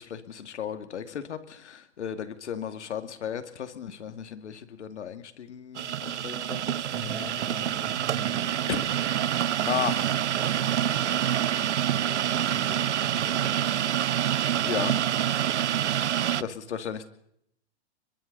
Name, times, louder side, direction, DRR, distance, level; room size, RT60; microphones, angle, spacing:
voice 1, 0.0-6.8 8.7-8.8 9.7-9.9 14.6-14.9 16.4-17.1, left 8 dB, 80° left, 9 dB, 2.4 m, -34 dB
sound 1, 5.7-16.4, right 10 dB, 85° right, 0.9 m, -27 dB
voice 2, 6.9-9.2 9.6-13.7 15.6-16.5, right 1 dB, ahead, -3 dB, 7.1 m, -43 dB
28.5 x 22.0 x 4.1 m, 0.71 s
hypercardioid pair, 170°, 34 cm